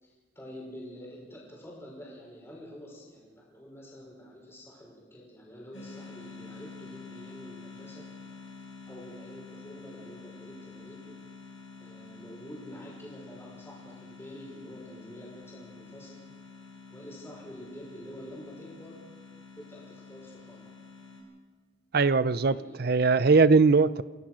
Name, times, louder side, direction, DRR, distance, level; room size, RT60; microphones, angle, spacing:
voice 1, 0.0-8.1 8.9-11.2 11.8-16.1 16.9-19.0 19.6-20.6 22.3-22.8, equal, 15° left, -3 dB, 5.7 m, -47 dB
sound 1, 5.7-21.2, left 4 dB, 90° left, 7.3 m, -48 dB
voice 2, 21.9-24.0, right 4 dB, 55° right, 17 dB, 0.6 m, -21 dB
27.5 x 16.5 x 6.4 m, 1.4 s
head